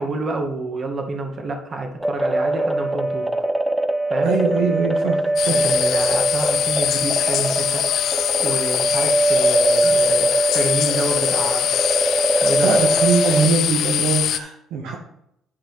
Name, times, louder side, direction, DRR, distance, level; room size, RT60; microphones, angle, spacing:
voice 1, 0.0-3.3 4.1-4.3 5.5-7.8 8.1-11.7 12.4-12.7, right 2 dB, 40° right, 3 dB, 2.0 m, -28 dB
sound 1, 2.0-13.5, right 2 dB, 5° right, 0.7 m, -22 dB
voice 2, 4.2-5.6 12.6-14.9, right 5 dB, 75° right, 1 dB, 1.6 m, -22 dB
sound 2, 5.4-14.4, left 11 dB, 70° left, 0.5 m, -22 dB
11.5 x 5.0 x 4.1 m, 0.76 s
supercardioid pair, 75°, 0 cm